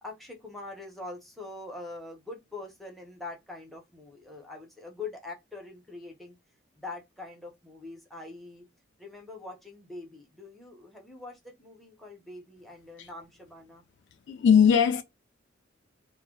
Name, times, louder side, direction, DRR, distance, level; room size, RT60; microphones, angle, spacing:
voice 1, 0.0-6.3 6.7-8.7 9.0-13.8, left 3 dB, ahead, 0.7 m, -43 dB
voice 2, 14.3-15.0, left 7 dB, 60° left, 0.3 m, -20 dB
2.1 x 2.1 x 3.5 m
head